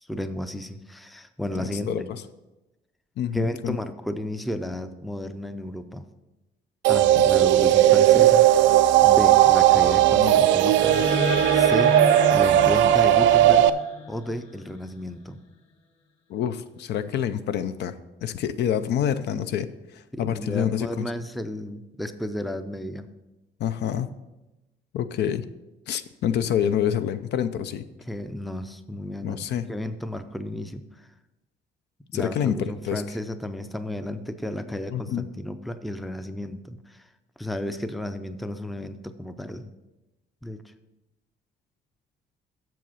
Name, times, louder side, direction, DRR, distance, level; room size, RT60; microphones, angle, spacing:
voice 1, 0.1-2.1 3.3-6.1 6.9-8.5 9.0-11.1 11.5-12.0 12.3-13.7 14.1-15.4 20.1-23.1 28.1-31.1 32.1-37.1 37.4-39.7 40.4-40.6, left 1 dB, ahead, 10 dB, 0.4 m, -33 dB
voice 2, 1.6-2.2 3.2-3.8 7.4-7.5 10.1-10.4 16.3-17.9 18.2-19.7 19.9-21.1 23.6-24.1 24.9-25.5 25.9-27.8 29.2-29.7 32.1-33.2 34.9-35.3, left 9 dB, 70° left, 12 dB, 0.5 m, -27 dB
sound 1, 6.8-13.7, right 12 dB, 90° right, 0.4 m, -17 dB
sound 2, 10.6-14.7, left 3 dB, 30° left, 1.4 m, -31 dB
7.6 x 6.9 x 5.6 m, 1.0 s
cardioid pair, 130°, 18 cm